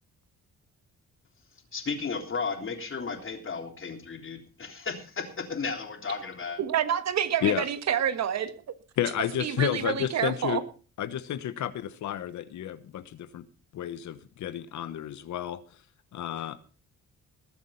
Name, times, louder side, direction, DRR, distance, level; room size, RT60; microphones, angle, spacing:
voice 1, 1.7-6.6, left 5 dB, 45° left, 5 dB, 3.5 m, -34 dB
voice 2, 6.6-8.5 9.4-10.6, right 9 dB, 65° right, 11 dB, 1.5 m, -28 dB
voice 3, 9.0-10.6 11.0-13.4 13.7-15.6 16.1-16.6, left 11 dB, 75° left, 13 dB, 1.2 m, -31 dB
20.5 x 7.4 x 5.7 m, 0.38 s
cardioid pair, 95°, 29 cm